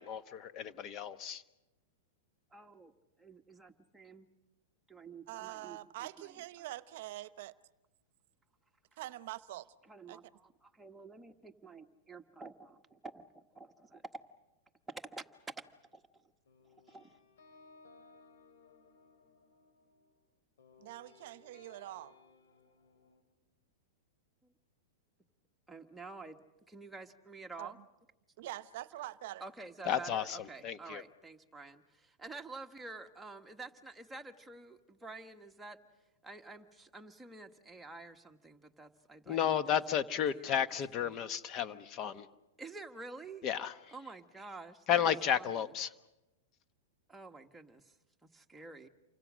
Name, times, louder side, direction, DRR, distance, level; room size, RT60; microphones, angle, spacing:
voice 1, 0.0-1.4 29.9-30.4 30.6-31.0 39.3-42.3 43.4-43.7 44.9-45.9, left 9 dB, 30° left, 1.1 m, -32 dB
voice 2, 2.5-4.3 4.9-6.7 9.8-14.0 14.9-15.2 15.9-16.3 16.9-17.2 24.4-24.5 25.7-27.8 29.4-35.8 36.2-39.6 39.9-40.0 40.3-40.6 40.9-41.2 42.6-43.5 43.9-45.6 47.1-48.0 48.2-48.9, right 3 dB, 5° right, 1.5 m, -50 dB
voice 3, 5.3-7.5 9.0-9.7 10.1-10.2 20.8-22.1 27.6-27.7 28.4-29.5 29.9-30.3, right 15 dB, 60° right, 0.9 m, -45 dB
sound 1, 15.4-16.0 16.4-20.2 20.6-23.2, left 4 dB, 85° left, 4.4 m, -62 dB
29.0 x 25.0 x 6.3 m
supercardioid pair, 150°, 0 cm